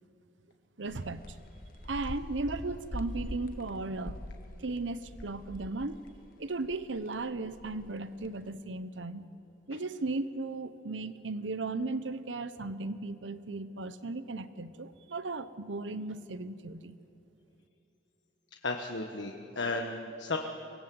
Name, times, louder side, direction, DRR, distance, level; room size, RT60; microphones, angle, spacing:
voice 1, 0.8-1.4 1.8-4.2 4.6-6.0 6.4-9.3 9.7-16.9, right 3 dB, 85° right, 13 dB, 0.9 m, -36 dB
sound 1, 0.9-6.3 6.6-8.3, left 1 dB, 50° left, 1.1 m, -43 dB
voice 2, 18.6-20.4, left 3 dB, 80° left, 3 dB, 1.4 m, -34 dB
24.0 x 20.5 x 7.8 m, 3.0 s
head